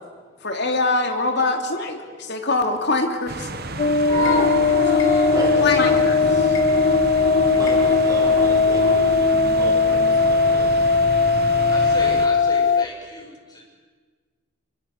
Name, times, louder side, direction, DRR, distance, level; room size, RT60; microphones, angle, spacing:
voice 1, 0.4-3.5 4.9-5.0 5.6-6.4, left 3 dB, 60° left, 4 dB, 3.0 m, -23 dB
sound 1, 3.3-12.3, right 2 dB, 55° right, 1.7 m, -32 dB
sound 2, 3.8-12.9, left 4 dB, 40° left, 0.6 m, -18 dB
sound 3, 4.1-9.1, left 4 dB, 85° left, 4.1 m, -25 dB
voice 2, 5.3-5.7 7.6-10.7, equal, 20° right, -2 dB, 5.3 m, -34 dB
voice 3, 11.7-13.3, left 2 dB, 20° left, -2 dB, 6.9 m, -35 dB
27.0 x 24.5 x 6.7 m, 1.5 s
head